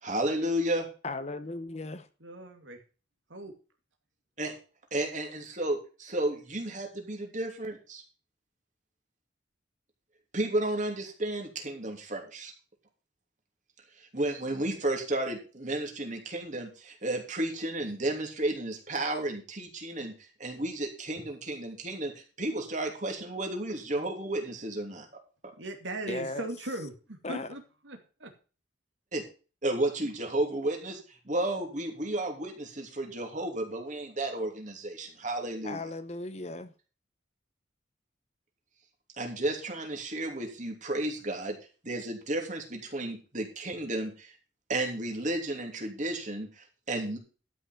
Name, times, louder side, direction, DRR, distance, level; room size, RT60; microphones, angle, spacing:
voice 1, 0.0-0.9 4.4-4.5 4.9-8.0 10.3-12.5 14.0-25.1 29.1-29.2 29.6-35.8 39.2-41.6 41.8-44.3 44.7-47.2, right 1 dB, 40° right, 3.0 m, -32 dB
voice 2, 1.0-2.1 26.1-26.5 27.2-27.5 35.6-36.7, left 2 dB, 35° left, 0.9 m, -36 dB
voice 3, 2.2-2.8 3.3-3.5 25.6-28.3, right 2 dB, 80° right, 2.4 m, -39 dB
12.5 x 6.0 x 6.0 m
head